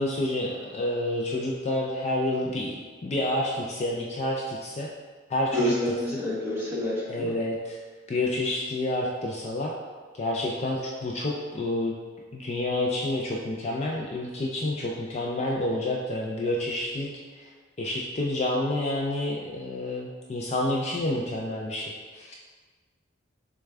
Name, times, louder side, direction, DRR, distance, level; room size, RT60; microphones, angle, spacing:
voice 1, 0.0-4.9 5.3-5.7 7.1-7.8 8.1-9.7 10.1-11.9 12.3-17.1 17.4-17.5 17.8-22.3, left 1 dB, 35° left, -2 dB, 0.4 m, -29 dB
voice 2, 5.5-7.3, left 1 dB, 15° right, -9 dB, 1.3 m, -28 dB
6.5 x 2.3 x 3.4 m, 1.4 s
head